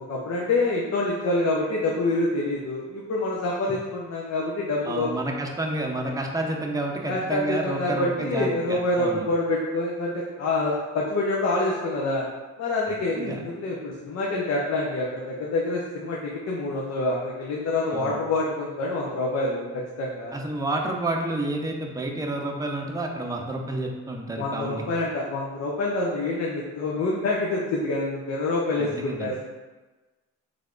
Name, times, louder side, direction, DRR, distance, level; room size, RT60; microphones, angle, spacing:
voice 1, 0.0-5.1 7.1-12.3 12.6-20.3 24.4-29.4, left 2 dB, 55° left, -4 dB, 0.8 m, -26 dB
voice 2, 4.9-9.3 13.2-13.4 17.9-18.2 20.3-24.8 28.8-29.4, right 2 dB, 10° right, 0 dB, 0.6 m, -30 dB
3.4 x 3.2 x 3.8 m, 1.2 s
cardioid pair, 90°, 30 cm